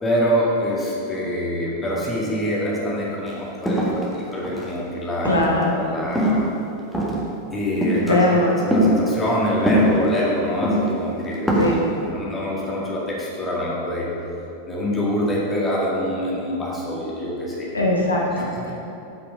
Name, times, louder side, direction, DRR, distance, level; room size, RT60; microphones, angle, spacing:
voice 1, 0.0-5.4 5.7-6.4 7.5-14.1 14.7-17.7 18.4-18.7, equal, 15° left, -5 dB, 2.1 m, -25 dB
sound 1, 3.3-3.4 3.6-4.7 5.2-5.6 6.1-6.5 6.9-7.3 7.8-8.1 8.7-8.9 9.7-10.2 10.6-10.9 11.3-11.8, equal, ahead, 1.7 m, -21 dB
voice 2, 5.2-5.8 8.0-8.5 11.6-11.7 17.7-18.7, left 2 dB, 75° left, -2 dB, 1.1 m, -20 dB
8.6 x 5.8 x 5.3 m, 2.9 s
figure-of-eight pair, 90°, 0 cm